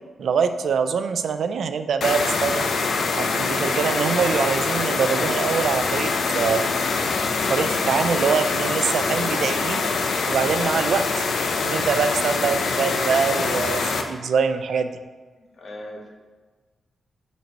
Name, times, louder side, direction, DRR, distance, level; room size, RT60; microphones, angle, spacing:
voice 1, 0.2-2.7 3.1-6.7 7.5-9.9 10.3-11.1 11.6-14.9, right 6 dB, 70° right, 9 dB, 0.4 m, -24 dB
sound 1, 2.0-14.0, left 4 dB, 65° left, 0.6 m, -24 dB
voice 2, 15.6-16.1, left 1 dB, 50° left, 0 dB, 1.1 m, -38 dB
5.3 x 4.4 x 5.2 m, 1.3 s
wide cardioid pair, 165°, 0 cm